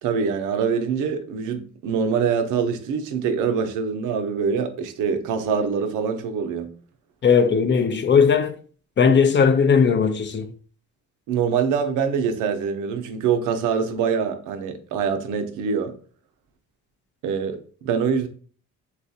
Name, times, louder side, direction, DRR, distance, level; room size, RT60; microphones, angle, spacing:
voice 1, 0.0-6.8 11.3-15.9 17.2-18.3, right 6 dB, 90° right, 0.6 m, -24 dB
voice 2, 7.2-8.5 9.0-10.5, left 6 dB, 40° left, 0.5 m, -18 dB
4.1 x 2.3 x 2.7 m
cardioid pair, 90°, 30 cm